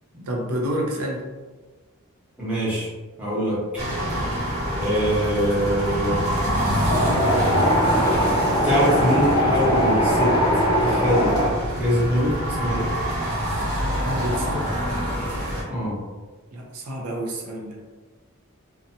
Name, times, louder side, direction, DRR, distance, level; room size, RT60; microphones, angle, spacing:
voice 1, 0.3-1.3 14.0-14.7 16.5-17.8, equal, 80° right, -1 dB, 0.5 m, -29 dB
voice 2, 2.4-2.9 3.2-3.6 4.7-6.3 8.6-10.3 10.7-11.4 11.7-12.9 15.7-16.0, equal, 5° right, -10 dB, 0.9 m, -23 dB
sound 1, 3.8-15.6, equal, 60° right, 1.1 m, -26 dB
Wind, 6.9-11.5, equal, 20° left, 0.4 m, -21 dB
2.6 x 2.2 x 2.6 m, 1.3 s
head